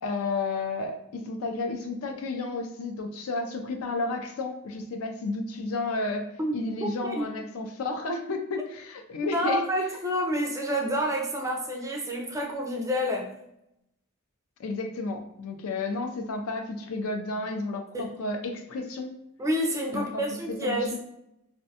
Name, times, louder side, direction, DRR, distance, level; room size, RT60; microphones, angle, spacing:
voice 1, 0.0-9.6 14.6-19.1 19.9-20.2 20.6-21.0, left 3 dB, 70° left, 5 dB, 0.4 m, -32 dB
voice 2, 6.4-7.2 9.2-13.3 17.9-18.1 19.4-21.0, equal, 15° right, 1 dB, 0.3 m, -29 dB
2.5 x 2.1 x 2.7 m, 0.82 s
head